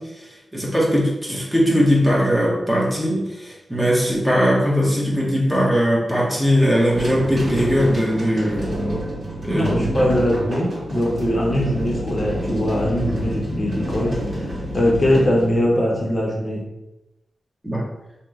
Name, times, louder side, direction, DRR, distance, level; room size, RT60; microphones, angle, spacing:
voice 1, 0.0-8.8 9.4-10.1 17.6-17.8, equal, 10° right, -4 dB, 0.9 m, -20 dB
sound 1, 6.8-16.2, equal, 55° right, 1.4 m, -28 dB
voice 2, 9.4-16.6, equal, 40° left, -3 dB, 0.7 m, -21 dB
2.9 x 2.1 x 3.6 m, 0.91 s
wide cardioid pair, 100°, 0 cm